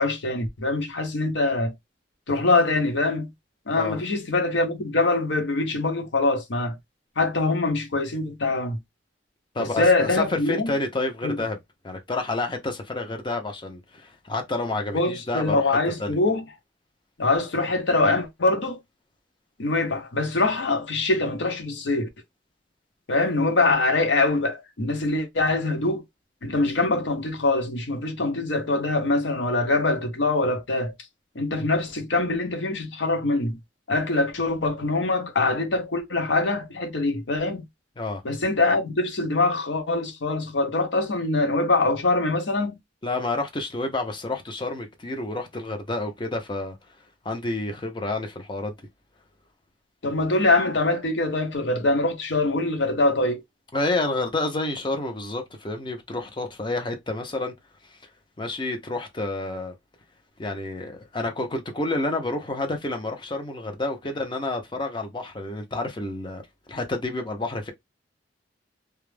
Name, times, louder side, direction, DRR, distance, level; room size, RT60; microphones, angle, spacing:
voice 1, 0.0-1.7 2.3-3.3 3.7-6.8 7.2-8.8 9.6-10.7 11.2-11.4 14.9-16.4 17.2-18.8 19.6-22.1 23.1-26.0 26.4-30.9 31.3-33.6 33.9-37.6 38.2-42.8 50.0-53.4, left 2 dB, 85° left, 0.7 m, -23 dB
voice 2, 9.5-11.6 11.8-15.7 16.0-16.1 38.0-38.2 43.0-46.8 47.2-48.7 53.7-57.5 57.9-58.0 58.4-59.7 60.4-66.4 66.7-67.7, left 2 dB, 25° left, 0.6 m, -29 dB
2.3 x 2.0 x 3.1 m
head